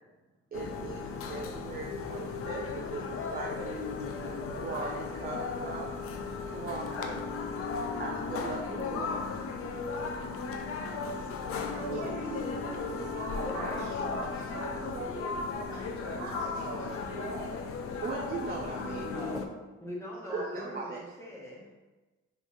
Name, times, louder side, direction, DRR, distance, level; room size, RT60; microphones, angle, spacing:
sound 1, 0.5-19.5, left 4 dB, 50° left, 0.4 m, -36 dB
voice 1, 0.5-3.8 4.5-6.0 6.3-7.2 8.0-9.1 11.9-12.3 13.8-14.0 14.4-14.5 16.5-16.7 18.0-19.4 20.3-21.0, right 4 dB, 30° right, -1 dB, 0.5 m, -39 dB
voice 2, 11.7-17.6 20.3-20.7, right 2 dB, 60° right, -4 dB, 1.2 m, -40 dB
voice 3, 13.4-14.0 16.2-16.6 19.0-19.5 19.8-21.7, left 1 dB, 10° left, -5 dB, 0.9 m, -42 dB
3.4 x 3.1 x 2.7 m, 1.2 s
cardioid pair, 90°, 30 cm